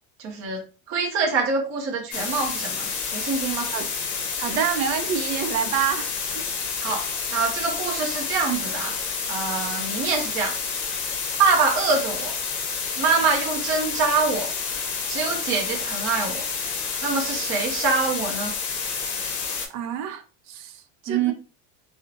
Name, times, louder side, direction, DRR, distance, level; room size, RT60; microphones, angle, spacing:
voice 1, 0.2-0.6 0.9-3.7 6.8-9.0 9.3-10.6 11.4-12.3 13.0-14.5 15.1-16.4 17.0-18.5 21.1-21.3, right 4 dB, 30° right, 0.5 m, -25 dB
sound 1, 2.1-19.7, left 5 dB, 45° left, 0.7 m, -29 dB
voice 2, 4.4-6.1 6.3-6.4 19.7-21.3, right 8 dB, 90° right, 0.6 m, -27 dB
2.9 x 2.0 x 2.5 m
cardioid pair, 160°, 41 cm